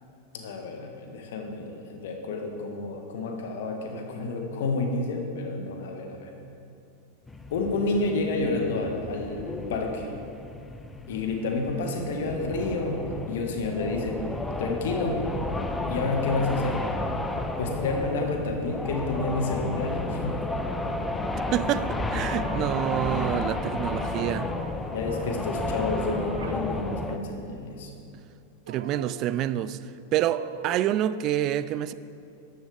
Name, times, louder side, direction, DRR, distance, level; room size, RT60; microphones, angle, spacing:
voice 1, 0.3-6.3 7.5-10.1 11.1-14.2 14.6-15.3 15.9-16.9 17.6-20.4 24.9-27.9, left 3 dB, 55° left, 3 dB, 1.4 m, -30 dB
sound 1, 7.3-27.2, left 2 dB, 10° left, 0.7 m, -32 dB
sound 2, 19.1-19.4 22.1-22.7 24.1-24.7 25.0-26.6 27.0-27.1 28.7-29.2 30.4-30.8, right 5 dB, 65° right, 0.8 m, -41 dB
voice 2, 21.5-24.5 28.7-29.8 30.1-31.9, right 12 dB, 35° right, 15 dB, 0.3 m, -27 dB
13.5 x 11.0 x 3.4 m, 2.6 s
figure-of-eight pair, 90°, 0 cm